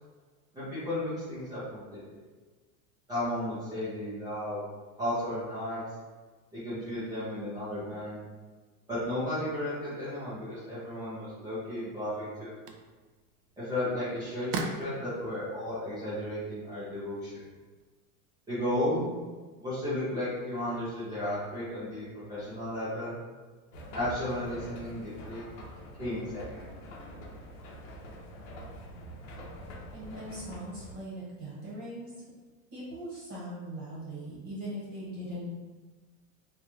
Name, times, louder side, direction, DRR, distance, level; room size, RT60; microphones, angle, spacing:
voice 1, 0.5-2.2 3.1-4.6 5.0-5.8 6.5-8.2 8.9-12.5 13.6-17.4 18.5-19.1 19.6-23.1 23.9-25.4 26.0-26.6, left 1 dB, 10° right, -13 dB, 0.3 m, -34 dB
sound 1, 11.6-17.8, right 4 dB, 80° right, 0.7 m, -43 dB
sound 2, 23.7-30.9, equal, 60° left, 0.8 m, -45 dB
voice 2, 29.9-32.1 32.7-35.5, equal, 30° right, -7 dB, 1.0 m, -40 dB
2.9 x 2.2 x 3.8 m, 1.4 s
supercardioid pair, 155°, 45 cm